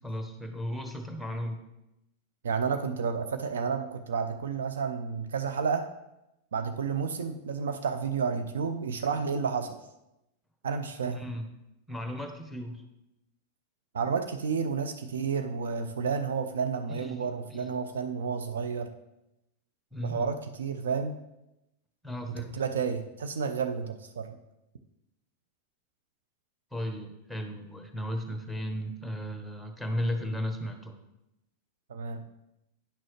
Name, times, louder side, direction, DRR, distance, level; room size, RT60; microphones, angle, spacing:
voice 1, 0.0-1.6 11.1-11.4 11.9-12.8 16.9-17.7 19.9-20.3 22.0-22.6 26.7-30.9, equal, ahead, 4 dB, 1.1 m, -35 dB
voice 2, 2.4-5.9 6.5-9.8 10.6-11.2 13.9-18.9 20.0-21.2 22.3-24.4 31.9-32.2, right 6 dB, 65° right, 7 dB, 0.5 m, -31 dB
9.7 x 6.1 x 3.1 m, 0.89 s
figure-of-eight pair, 90°, 0 cm